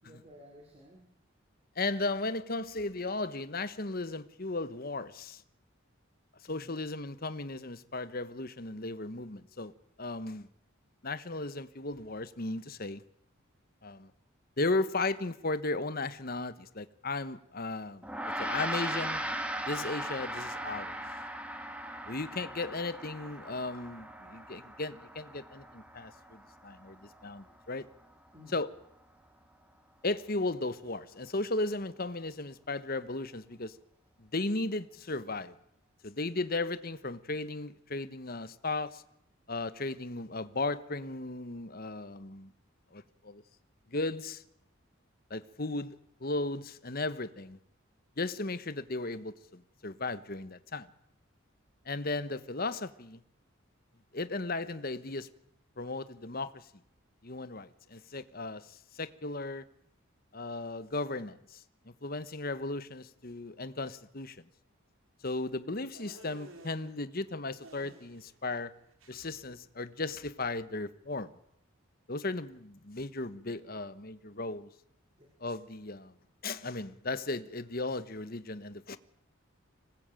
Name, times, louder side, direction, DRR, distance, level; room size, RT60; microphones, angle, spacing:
voice 1, 0.0-1.1 6.4-7.0 28.3-28.6 75.2-75.3, left 1 dB, 30° right, 4.8 m, -55 dB
voice 2, 1.8-5.4 6.5-9.7 10.0-10.5 11.0-13.0 13.8-14.1 14.6-18.0 18.4-19.2 19.6-21.0 22.1-27.9 28.5-28.7 30.0-33.8 34.2-35.5 36.0-39.0 39.5-42.5 42.9-43.4 43.9-44.4 45.3-47.6 48.2-50.9 51.8-53.2 54.1-55.3 55.8-56.7 57.2-59.6 60.3-61.6 62.0-64.4 65.2-68.7 69.1-71.3 72.1-74.7 75.4-76.1 76.4-79.0, left 2 dB, 45° left, 1.3 m, -36 dB
Gong, 18.0-27.7, right 1 dB, 5° right, 2.2 m, -39 dB
sound 1, 65.9-66.9 67.6-68.4 68.6-69.4, right 1 dB, 70° right, 4.7 m, -53 dB
25.5 x 19.5 x 9.1 m
head